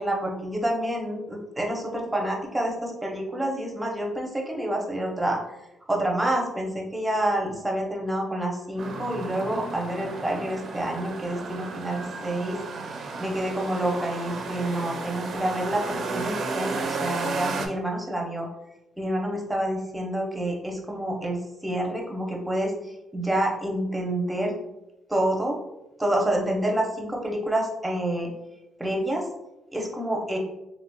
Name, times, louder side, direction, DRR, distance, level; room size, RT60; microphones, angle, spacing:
voice 1, 0.0-5.4 5.9-12.6 12.8-18.5 19.0-24.5 25.1-25.6 26.0-28.3 28.8-29.3 29.7-30.4, right 1 dB, 10° right, 0 dB, 0.7 m, -28 dB
sound 1, 8.8-17.7, right 3 dB, 60° right, 0.4 m, -33 dB
3.1 x 2.8 x 2.2 m, 0.92 s
cardioid pair, 90°, 0 cm